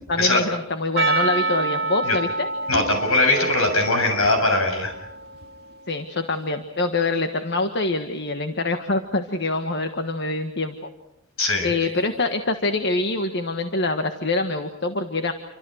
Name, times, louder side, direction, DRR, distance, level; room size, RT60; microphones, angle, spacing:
voice 1, 0.1-2.5 5.9-10.9 11.6-15.3, left 2 dB, 50° left, 7 dB, 1.5 m, -25 dB
Percussion, 1.0-5.5, right 3 dB, 45° right, 2.3 m, -27 dB
voice 2, 2.7-4.9 11.4-11.7, left 2 dB, 70° left, 6 dB, 7.2 m, -20 dB
28.5 x 25.0 x 6.4 m, 0.84 s
head